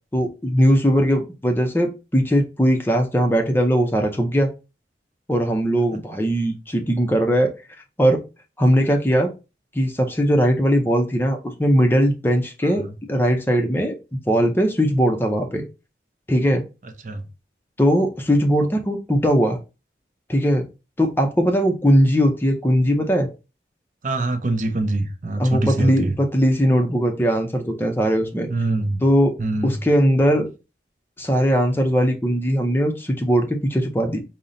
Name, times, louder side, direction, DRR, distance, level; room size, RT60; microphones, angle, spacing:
voice 1, 0.1-4.5 5.3-7.5 8.0-8.2 8.6-9.3 9.7-14.0 14.3-15.6 16.3-16.6 17.8-19.6 20.3-20.7 21.0-23.3 25.4-28.5 29.0-29.4 29.6-30.5 31.2-34.2, equal, 10° left, 0.5 m, -19 dB
voice 2, 24.0-26.2 28.5-29.0 29.4-29.8, right 2 dB, 45° right, 0.5 m, -24 dB
5.4 x 2.1 x 3.8 m
head